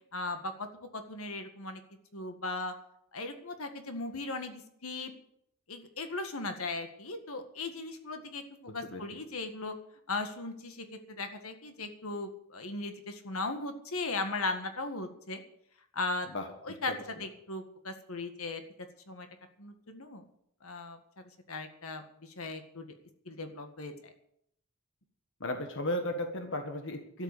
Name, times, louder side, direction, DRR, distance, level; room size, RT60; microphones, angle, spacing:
voice 1, 0.1-1.8 2.1-2.7 3.1-5.1 5.7-9.7 10.1-15.4 15.9-16.3 16.6-16.9 17.2-18.6 19.1-19.3 19.6-20.2 20.6-22.9 23.3-24.1, left 3 dB, 75° left, 7 dB, 1.8 m, -38 dB
voice 2, 25.4-27.2, left 1 dB, 60° left, 5 dB, 1.6 m, -34 dB
13.0 x 8.1 x 9.7 m, 0.70 s
head